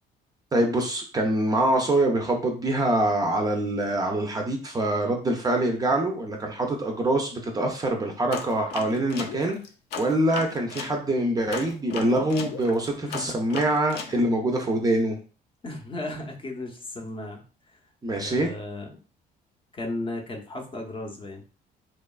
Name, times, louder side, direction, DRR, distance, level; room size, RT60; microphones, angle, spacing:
voice 1, 0.5-9.6 10.0-15.2 18.0-18.5, right 1 dB, 20° right, 2 dB, 0.4 m, -24 dB
sound 1, 8.3-11.0 11.5-14.2, left 6 dB, 80° left, 0.4 m, -36 dB
voice 2, 13.0-13.3 15.6-17.8 18.1-19.0 19.7-21.4, left 2 dB, 30° left, 2 dB, 0.6 m, -35 dB
2.8 x 2.3 x 2.3 m, 0.37 s
cardioid pair, 110°, 17 cm